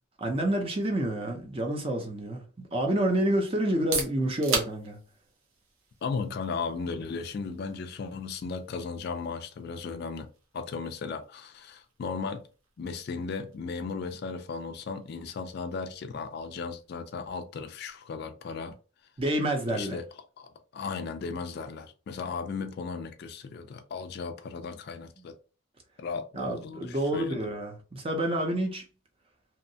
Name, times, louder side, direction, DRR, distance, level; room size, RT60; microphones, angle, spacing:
voice 1, 0.2-5.0 19.2-20.0 26.3-28.8, right 1 dB, 25° right, 0.5 m, -28 dB
sound 1, 3.6-19.3, right 4 dB, 75° right, 0.8 m, -42 dB
voice 2, 6.0-10.3 10.5-12.4 12.8-18.8 19.7-20.1 20.4-25.4 26.0-27.4, left 5 dB, 50° left, 0.3 m, -36 dB
2.7 x 2.1 x 2.6 m
head